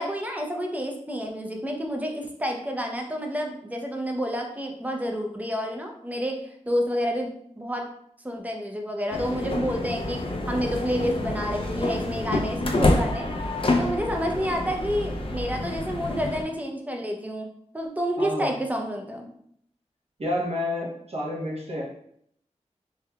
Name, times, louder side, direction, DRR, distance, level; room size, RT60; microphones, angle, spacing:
voice 1, 0.0-6.4 6.7-7.3 7.6-7.8 8.2-10.2 10.5-13.3 13.8-17.5 17.7-19.3, equal, 10° right, 2 dB, 0.6 m, -29 dB
sound 1, 9.1-16.4, left 2 dB, 45° left, 0.5 m, -27 dB
voice 2, 18.2-18.6 20.2-21.8, left 1 dB, 55° right, -3 dB, 1.0 m, -29 dB
3.4 x 3.3 x 2.3 m, 0.68 s
wide cardioid pair, 75°, 12 cm